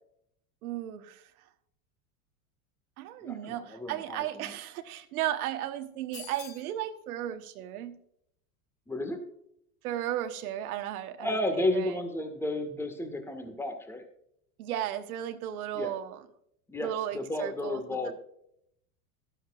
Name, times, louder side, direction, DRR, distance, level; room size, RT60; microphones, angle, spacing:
voice 1, 0.6-1.2 3.0-8.0 9.8-12.0 14.6-16.2 16.8-18.1, right 12 dB, 80° right, 8 dB, 1.2 m, -35 dB
voice 2, 3.2-4.5 8.9-9.2 11.2-14.0 15.7-15.9 16.7-18.1, left 1 dB, 5° left, 6 dB, 1.6 m, -32 dB
sound 1, 6.1-6.7, left 6 dB, 50° left, 2.9 m, -45 dB
12.5 x 12.0 x 2.4 m, 0.71 s
supercardioid pair, 115°, 43 cm